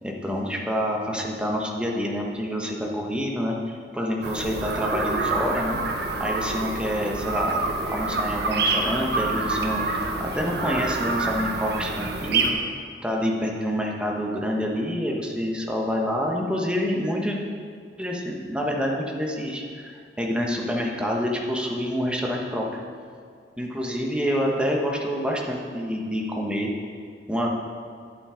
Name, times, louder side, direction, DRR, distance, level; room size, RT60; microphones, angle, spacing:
voice 1, 0.0-5.8 6.2-12.5 13.0-17.4 18.0-19.8 20.2-22.7 23.6-26.7 27.3-27.5, equal, 5° right, -1 dB, 1.2 m, -27 dB
sound 1, 4.2-12.5, right 3 dB, 65° right, 1.2 m, -27 dB
11.0 x 8.6 x 5.0 m, 2.1 s
head